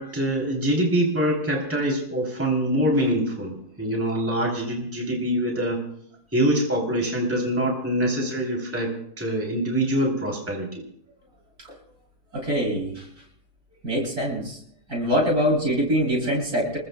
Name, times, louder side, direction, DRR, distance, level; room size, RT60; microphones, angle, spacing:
voice 1, 0.0-5.8 6.3-10.8, right 1 dB, 10° right, -1 dB, 3.3 m, -24 dB
voice 2, 12.3-13.1 13.8-14.6 14.9-16.8, equal, 60° right, -3 dB, 8.6 m, -24 dB
28.5 x 21.0 x 2.3 m, 0.69 s
omnidirectional pair, 1.8 m